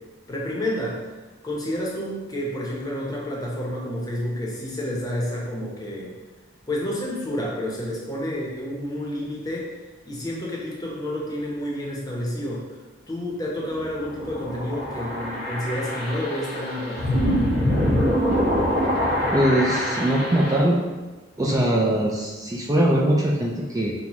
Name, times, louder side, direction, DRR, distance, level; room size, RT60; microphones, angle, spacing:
voice 1, 0.3-1.0 1.4-6.1 6.7-9.7 10.0-12.6 13.1-17.4, left 1 dB, 20° left, -4 dB, 0.8 m, -29 dB
sound 1, 13.7-20.6, equal, 65° right, 1.2 m, -24 dB
voice 2, 19.3-20.8 21.4-23.9, right 1 dB, 20° right, -3 dB, 0.4 m, -21 dB
5.3 x 2.2 x 3.0 m, 1.3 s
head